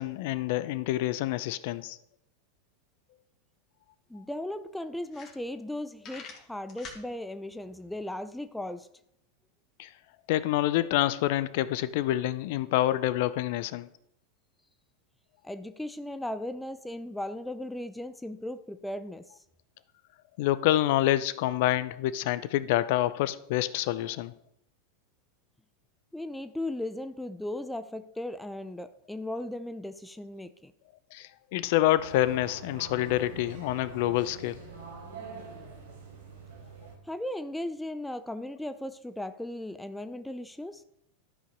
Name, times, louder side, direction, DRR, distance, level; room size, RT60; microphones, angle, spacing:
voice 1, 0.0-2.0 9.8-9.9 10.3-13.9 20.4-24.3 31.1-34.6, left 14 dB, 60° left, 16 dB, 0.6 m, -27 dB
sound 1, 3.7-3.8 4.1-4.2 4.7-4.8 5.0-5.7 6.0-7.0, left 5 dB, 40° left, 2.4 m, -45 dB
voice 2, 4.1-8.9 15.4-19.2 26.1-30.7 37.1-40.8, left 1 dB, 5° left, 11 dB, 0.6 m, -37 dB
sound 2, 32.0-36.9, right 4 dB, 80° right, 3.8 m, -45 dB
12.5 x 5.6 x 5.2 m, 0.76 s
hypercardioid pair, 95°, 0 cm